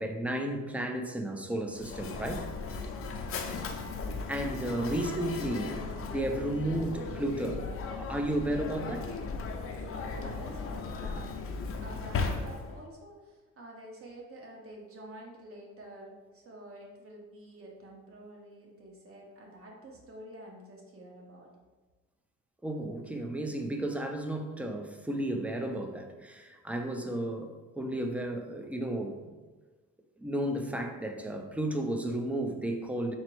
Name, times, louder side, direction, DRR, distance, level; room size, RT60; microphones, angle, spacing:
voice 1, 0.0-2.5 4.3-5.8 6.1-7.7 7.9-9.1 22.6-29.2 30.2-33.1, right 1 dB, 5° right, 4 dB, 0.4 m, -33 dB
Mechanisms, 1.7-12.9, left 4 dB, 45° left, 0.5 m, -37 dB
voice 2, 4.6-5.0 10.1-11.3 11.8-21.5, right 1 dB, 45° right, -1 dB, 1.0 m, -48 dB
4.1 x 2.0 x 4.5 m, 1.3 s
cardioid pair, 90°, 30 cm